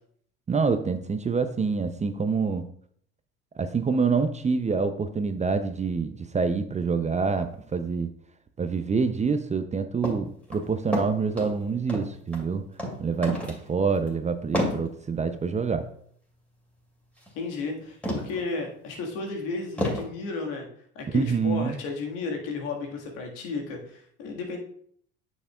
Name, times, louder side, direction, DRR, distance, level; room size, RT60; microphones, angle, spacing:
voice 1, 0.5-2.7 3.6-8.1 8.6-12.6 13.0-15.9 21.1-21.8, right 5 dB, 20° right, 9 dB, 0.6 m, -26 dB
sound 1, 10.0-10.2 10.5-11.6 11.9-12.5 12.8-13.0 13.2-13.6 13.9-14.1 14.5-14.8 17.2-17.3 18.0-18.4 18.9-19.0 19.8-20.1, equal, 5° left, 2.6 m, -29 dB
voice 2, 17.3-20.7 21.0-24.6, left 3 dB, 70° left, 1 dB, 1.8 m, -33 dB
8.7 x 6.3 x 2.3 m, 0.63 s
hypercardioid pair, 70°, 34 cm